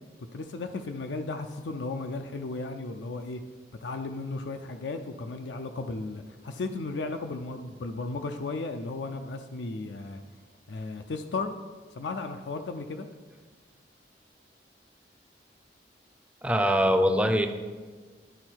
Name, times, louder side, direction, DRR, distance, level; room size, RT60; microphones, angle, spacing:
voice 1, 0.3-3.4 3.8-10.2 10.7-11.6 11.9-13.1, left 3 dB, 90° left, 6 dB, 0.5 m, -35 dB
voice 2, 16.4-17.5, equal, 5° right, 6 dB, 0.5 m, -22 dB
11.5 x 4.3 x 4.5 m, 1.4 s
head